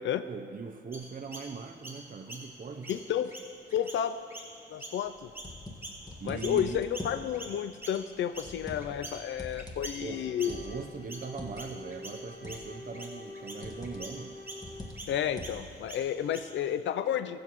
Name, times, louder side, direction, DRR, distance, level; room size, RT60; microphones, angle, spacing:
voice 1, 0.3-3.0 6.2-6.8 10.0-14.4, right 5 dB, 45° right, 5 dB, 0.7 m, -40 dB
Chirp tweet, 0.9-6.6 6.9-16.7, right 1 dB, 10° right, 3.0 m, -46 dB
voice 2, 2.9-3.3 3.7-4.2 4.7-5.3 6.2-10.6 15.1-17.4, left 9 dB, 80° left, 11 dB, 0.4 m, -31 dB
sound 1, 5.1-7.3 7.9-9.1 9.4-11.6 12.4-12.8 13.6-14.1 14.6-15.7, left 2 dB, 20° left, 1.7 m, -43 dB
Wind instrument woodwind instrument, 10.1-15.2, left 2 dB, 45° left, 2.0 m, -46 dB
20.5 x 7.8 x 3.1 m, 2.5 s
cardioid pair, 50°, 19 cm